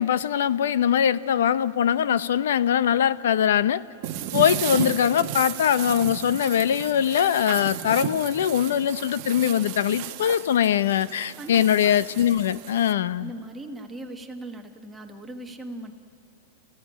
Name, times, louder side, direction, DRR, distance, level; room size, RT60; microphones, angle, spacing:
voice 1, 0.0-3.8 4.3-13.3, left 9 dB, 85° left, 16 dB, 0.7 m, -22 dB
sound 1, 4.0-12.9, right 12 dB, 35° right, 1.0 m, -34 dB
voice 2, 13.2-15.9, right 1 dB, 5° right, 4 dB, 1.2 m, -39 dB
28.0 x 15.5 x 9.9 m, 2.7 s
supercardioid pair, 180°, 0 cm